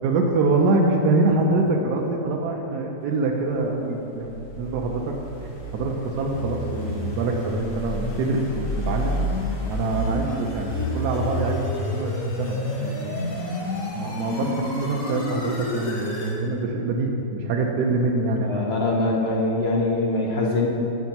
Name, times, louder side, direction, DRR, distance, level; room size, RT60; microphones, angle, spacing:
voice 1, 0.0-5.1 5.4-9.2 9.7-11.6 11.9-13.3 13.9-18.7, right 3 dB, 70° right, 1 dB, 1.2 m, -25 dB
sound 1, 4.2-16.4, left 1 dB, 50° left, 1.4 m, -30 dB
voice 2, 18.5-20.7, left 2 dB, 65° left, -2 dB, 0.6 m, -23 dB
9.4 x 7.2 x 2.9 m, 3.0 s
omnidirectional pair, 1.9 m